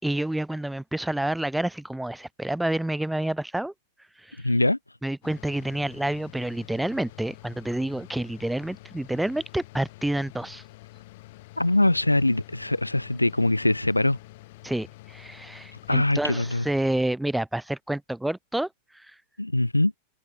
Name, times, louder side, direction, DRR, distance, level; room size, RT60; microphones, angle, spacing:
voice 1, 0.0-3.7 4.2-4.4 5.0-10.6 14.6-18.7 18.9-19.1, right 1 dB, 5° right, 3.8 m, -29 dB
voice 2, 4.4-4.8 11.6-14.2 15.9-16.6 19.4-19.9, left 1 dB, 85° left, 0.7 m, -22 dB
sound 1, 5.2-17.0, left 19 dB, 50° left, 5.8 m, -48 dB
figure-of-eight pair, 90°, 0 cm